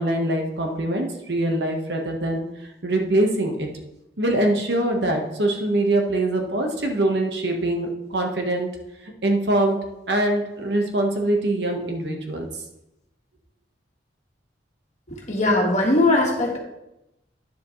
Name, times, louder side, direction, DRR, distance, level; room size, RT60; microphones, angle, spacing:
voice 1, 0.0-2.5 2.8-3.7 4.2-8.7 9.2-12.5, right 1 dB, 65° right, 2 dB, 1.4 m, -23 dB
voice 2, 15.3-16.6, left 2 dB, 40° left, 0 dB, 1.8 m, -19 dB
10.0 x 7.3 x 3.2 m, 0.88 s
head